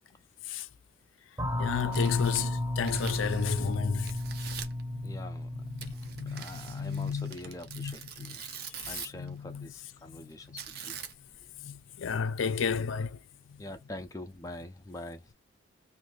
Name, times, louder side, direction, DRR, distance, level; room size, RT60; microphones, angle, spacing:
voice 1, 1.3-5.2 5.5-9.7 10.0-10.6 11.6-13.7, left 6 dB, 85° left, 0.4 m, -34 dB
sound 1, 1.4-7.7, left 1 dB, 15° right, 0.7 m, -34 dB
Tearing, 1.7-3.7 4.0-4.8 5.8-9.3 10.6-11.4, right 8 dB, 50° right, 0.5 m, -44 dB
voice 2, 5.0-5.5 5.9-8.4 8.9-11.0 13.6-15.3, left 1 dB, 15° left, 0.4 m, -45 dB
2.6 x 2.5 x 3.1 m
head